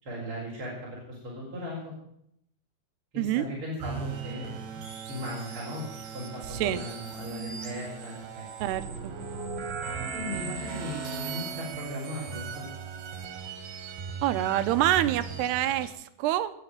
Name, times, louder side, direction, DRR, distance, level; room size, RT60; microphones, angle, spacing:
voice 1, 0.0-1.9 3.1-4.5 5.1-5.9 6.1-8.4 10.1-12.7, left 1 dB, 30° right, -5 dB, 5.8 m, -37 dB
sound 1, 3.8-15.9, right 6 dB, 70° right, 4.3 m, -38 dB
voice 2, 6.5-6.8 8.6-9.1 14.2-16.5, right 13 dB, 90° right, 12 dB, 2.9 m, -27 dB
20.5 x 7.7 x 9.0 m, 0.74 s
omnidirectional pair, 4.7 m